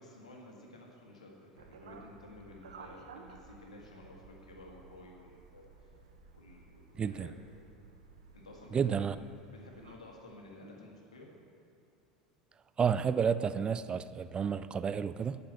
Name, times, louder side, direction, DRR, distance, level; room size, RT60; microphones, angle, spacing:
voice 1, 0.0-6.0 6.3-7.3 8.3-11.3, left 1 dB, 85° left, 1.8 m, -53 dB
sound 1, 1.6-10.0, right 4 dB, 80° right, 0.9 m, -55 dB
voice 2, 7.0-7.3 8.7-9.2 12.8-15.4, right 7 dB, 25° right, 0.4 m, -30 dB
9.4 x 6.9 x 7.6 m
hypercardioid pair, 80°, 3 cm